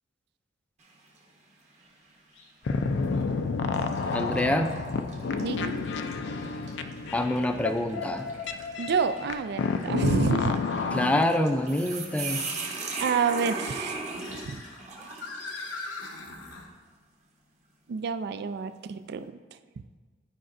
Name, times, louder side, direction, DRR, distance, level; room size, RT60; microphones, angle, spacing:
sound 1, 0.8-1.3 1.8-1.9 2.9-3.1 3.7-15.8, right 4 dB, 40° right, 1.1 m, -39 dB
sound 2, 2.3-2.5 3.1-3.2 5.3-5.4 8.9-9.0 12.2-12.8 13.7-16.7, left 3 dB, 90° left, 0.9 m, -42 dB
sound 3, 2.6-11.2, left 4 dB, 65° left, 0.4 m, -30 dB
voice 1, 4.1-4.7 7.1-8.3 10.9-12.6, left 1 dB, 5° left, 6 dB, 0.4 m, -26 dB
voice 2, 5.4-5.8 8.8-10.6 13.0-14.0 14.5-14.6 17.9-19.4, right 5 dB, 60° right, 12 dB, 0.3 m, -28 dB
12.0 x 5.0 x 2.5 m, 1.4 s
head